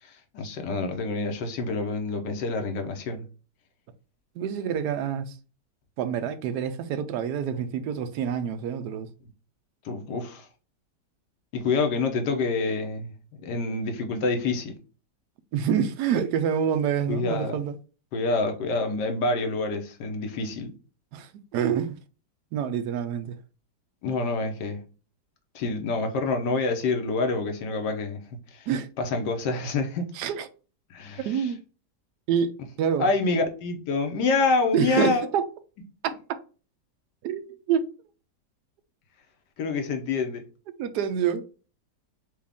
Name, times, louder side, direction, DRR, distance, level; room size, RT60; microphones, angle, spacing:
voice 1, 0.0-3.2 9.8-10.5 11.5-14.8 17.1-17.6 18.1-20.7 24.0-24.8 25.5-28.2 28.5-28.7 29.0-30.1 30.9-31.5 33.0-35.3 39.6-40.4, left 3 dB, 75° left, 1.4 m, -27 dB
voice 2, 4.4-5.3 6.0-9.1 15.5-17.7 21.1-22.0 22.5-23.4 28.7-28.9 30.1-30.5 31.2-31.6 32.3-32.5 32.8-33.0 34.7-35.5 37.2-37.9 40.8-41.4, right 8 dB, 75° right, 1.1 m, -27 dB
4.8 x 2.4 x 3.4 m
omnidirectional pair, 1.8 m